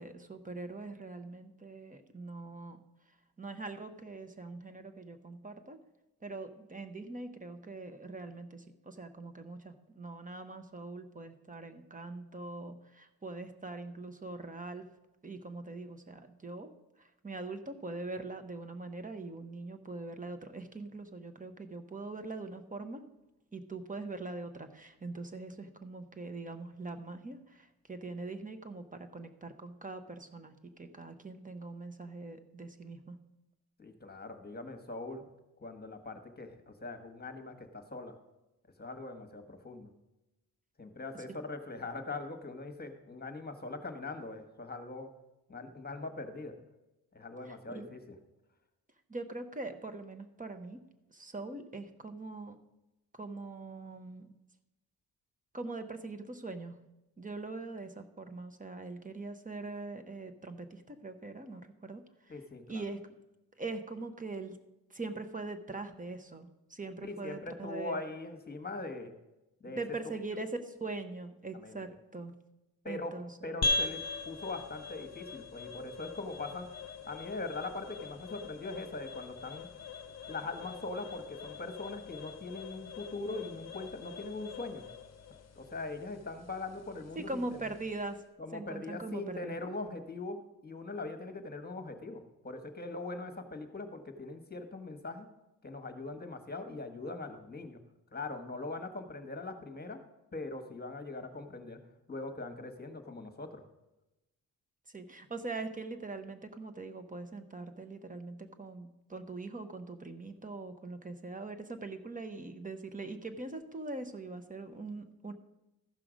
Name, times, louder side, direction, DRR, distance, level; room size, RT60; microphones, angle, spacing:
voice 1, 0.0-2.8 3.4-5.8 6.2-14.9 15.2-16.7 17.0-23.0 23.5-33.2 41.1-41.3 47.5-47.9 49.1-50.8 51.1-52.6 53.1-54.3 55.5-56.8 57.2-63.0 63.6-64.6 64.9-68.0 69.6-72.4 72.8-73.6 87.2-88.2 88.5-89.6 104.9-115.3, right 3 dB, 20° right, 9 dB, 0.9 m, -42 dB
voice 2, 33.8-35.2 35.6-38.1 38.8-39.9 40.8-45.1 45.5-46.5 47.1-48.1 62.3-62.8 67.0-69.1 69.6-69.8 71.5-71.8 72.8-73.1 73.4-76.7 77.1-79.7 80.3-84.8 85.5-87.4 88.4-95.3 95.6-97.8 98.1-100.0 100.3-101.8 102.1-103.6, left 3 dB, 25° left, 7 dB, 1.4 m, -41 dB
sound 1, 73.6-88.2, left 3 dB, 40° left, 0.8 m, -41 dB
14.0 x 5.8 x 5.1 m, 0.98 s
cardioid pair, 85°, 39 cm